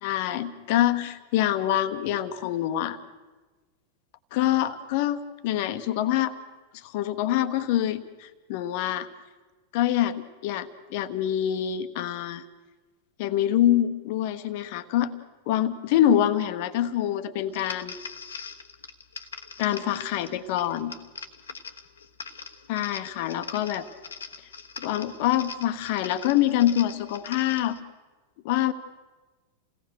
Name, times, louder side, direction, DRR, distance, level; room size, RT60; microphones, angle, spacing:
voice 1, 0.0-3.0 4.3-6.3 6.7-9.1 9.7-12.4 13.2-15.1 15.5-18.0 19.6-20.9 22.7-23.8 24.8-27.8 28.4-28.7, left 12 dB, 50° left, 11 dB, 1.2 m, -25 dB
sound 1, 17.5-27.8, left 5 dB, 70° left, 1.2 m, -42 dB
28.5 x 17.5 x 6.5 m, 1.3 s
figure-of-eight pair, 90°, 0 cm